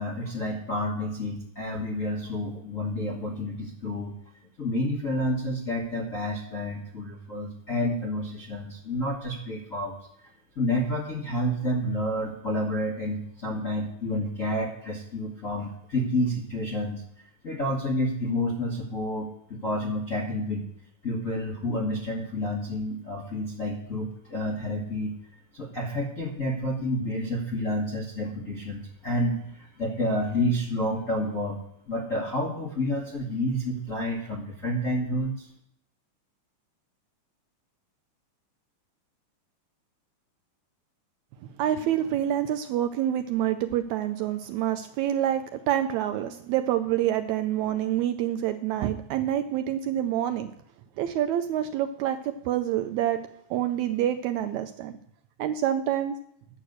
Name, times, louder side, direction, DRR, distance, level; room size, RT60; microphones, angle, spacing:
voice 1, 0.0-4.2 4.6-10.0 10.5-17.0 17.4-20.6 21.0-25.2 25.5-35.4, left 1 dB, 45° left, -4 dB, 1.1 m, -29 dB
voice 2, 41.6-50.5 51.0-53.2 53.5-54.9 55.4-56.2, right 11 dB, 80° right, 7 dB, 1.7 m, -27 dB
9.6 x 6.5 x 7.8 m, 0.71 s
omnidirectional pair, 3.7 m